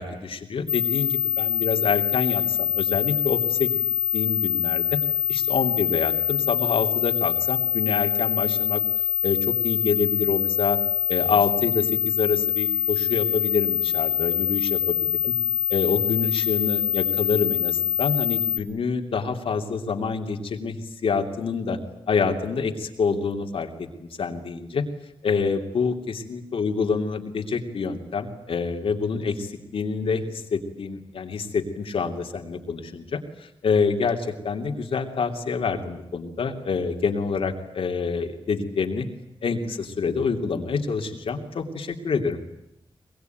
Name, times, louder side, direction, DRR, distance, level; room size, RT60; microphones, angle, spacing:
voice 1, 0.0-3.8 4.1-5.0 5.3-8.8 9.2-10.8 11.1-15.0 15.2-15.3 15.7-21.8 22.1-24.8 25.2-39.1 39.4-42.4, left 5 dB, 80° left, 4 dB, 3.0 m, -27 dB
sound 1, 0.7-18.6, left 10 dB, 45° left, 2.0 m, -24 dB
22.5 x 22.5 x 9.4 m, 0.83 s
wide cardioid pair, 120°, 9 cm